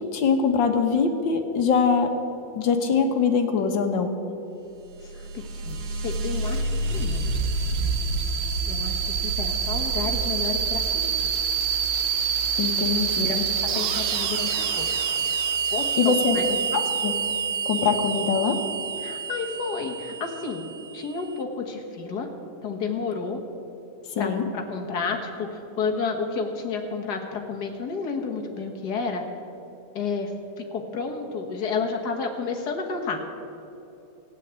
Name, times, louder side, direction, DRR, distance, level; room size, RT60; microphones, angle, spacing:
voice 1, 0.0-2.1 2.6-4.1 12.6-13.4 16.0-16.4 16.7-17.1 17.7-18.6 24.2-24.4, left 5 dB, 85° left, 6 dB, 1.9 m, -23 dB
sound 1, 4.9-21.2, right 5 dB, 75° right, 1.6 m, -27 dB
voice 2, 5.0-7.3 8.7-11.2 13.2-13.4 13.6-14.9 15.7-16.5 19.0-20.6 20.9-22.3 22.6-23.4 24.2-29.2 29.9-30.3 30.6-33.2, left 5 dB, 60° left, 3 dB, 2.0 m, -31 dB
15.0 x 9.2 x 8.2 m, 3.0 s
omnidirectional pair, 2.0 m